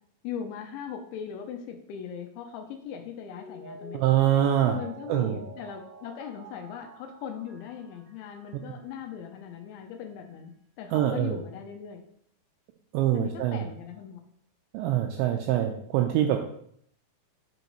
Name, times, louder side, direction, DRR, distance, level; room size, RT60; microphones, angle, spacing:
voice 1, 0.2-4.0 4.7-10.5 10.8-12.0 13.1-14.2, left 8 dB, 80° left, 4 dB, 2.9 m, -39 dB
Mallet percussion, 3.3-8.8 9.1-9.2, right 3 dB, 55° right, 2.2 m, -47 dB
voice 2, 3.9-4.8 5.1-5.4 10.9-11.4 12.9-13.7 14.7-16.4, right 11 dB, 85° right, 3 dB, 2.7 m, -24 dB
8.0 x 5.2 x 3.1 m, 0.66 s
omnidirectional pair, 5.6 m